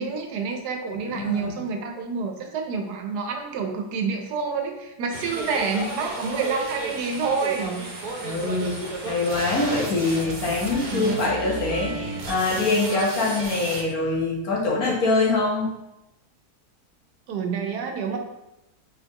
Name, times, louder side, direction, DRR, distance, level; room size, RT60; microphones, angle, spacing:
voice 1, 0.0-7.9 10.9-11.4 17.3-18.2, right 5 dB, 90° right, 4 dB, 1.3 m, -28 dB
voice 2, 1.1-1.6 8.2-15.7, left 3 dB, 65° left, -3 dB, 1.6 m, -24 dB
sound 1, 5.1-13.8, right 2 dB, 70° right, 1.3 m, -33 dB
4.3 x 4.2 x 3.0 m, 0.91 s
omnidirectional pair, 1.7 m